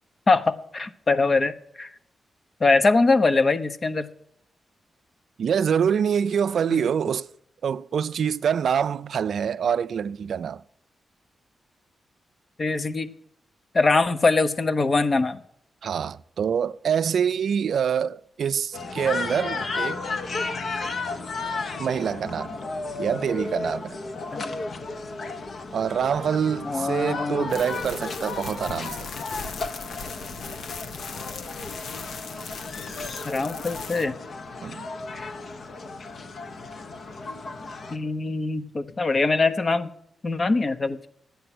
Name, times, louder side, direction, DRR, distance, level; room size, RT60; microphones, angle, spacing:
voice 1, 0.3-1.5 1.8-1.9 2.6-4.1 6.7-6.8 12.6-13.1 13.7-15.4 24.3-24.6 26.6-27.5 33.3-34.1 35.1-35.3 37.9-39.9 40.2-41.0, left 3 dB, 40° left, 1.0 m, -22 dB
voice 2, 5.4-7.3 7.6-10.6 15.8-20.0 21.8-22.6 23.0-24.0 25.7-29.1 34.6-34.9, right 7 dB, 75° right, 0.4 m, -25 dB
sound 1, 18.7-38.0, left 3 dB, 60° left, 1.3 m, -34 dB
sound 2, 27.5-34.0, left 5 dB, 80° left, 1.0 m, -38 dB
11.0 x 8.5 x 6.0 m
cardioid pair, 65°, 0 cm